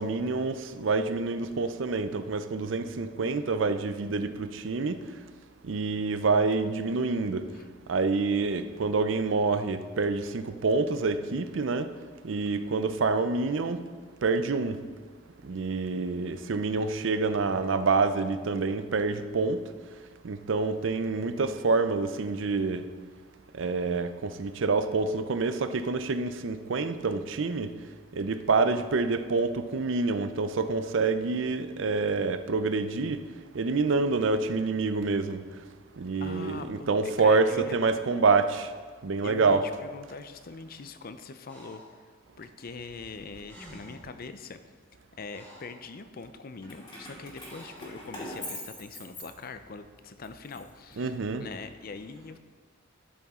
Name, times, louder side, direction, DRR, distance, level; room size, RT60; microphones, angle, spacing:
voice 1, 0.0-5.2 5.6-7.5 7.9-11.9 12.2-13.8 14.2-14.8 15.4-19.6 20.2-22.9 23.5-27.7 28.1-33.2 33.5-35.5 35.9-38.7 39.0-39.6 51.0-51.4, right 4 dB, 65° right, 0.5 m, -27 dB
voice 2, 36.2-37.8 39.2-44.6 45.2-52.4, left 4 dB, 45° left, 0.5 m, -43 dB
Breathing, 41.4-42.0 43.1-43.2 43.4-44.1 44.8-45.8 47.4-48.0, equal, 10° left, 2.7 m, -50 dB
Keys jangling, 46.6-49.8 50.2-51.5, left 1 dB, 25° left, 2.4 m, -43 dB
12.0 x 7.1 x 3.7 m
head